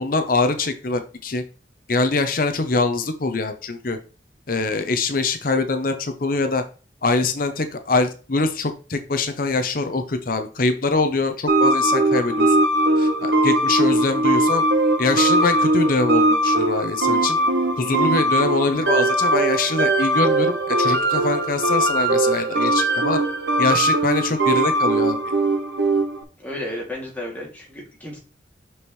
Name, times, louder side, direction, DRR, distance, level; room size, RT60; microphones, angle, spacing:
voice 1, 0.0-1.4 1.9-4.0 4.5-6.6 7.0-12.6 13.0-14.7 15.0-17.4 17.8-23.2 23.6-25.2, left 3 dB, 50° left, 8 dB, 0.7 m, -23 dB
sound 1, 11.5-26.2, right 1 dB, 75° right, 1.1 m, -20 dB
voice 2, 26.4-28.2, left 1 dB, 10° left, -3 dB, 2.5 m, -33 dB
6.3 x 6.2 x 3.1 m, 0.35 s
head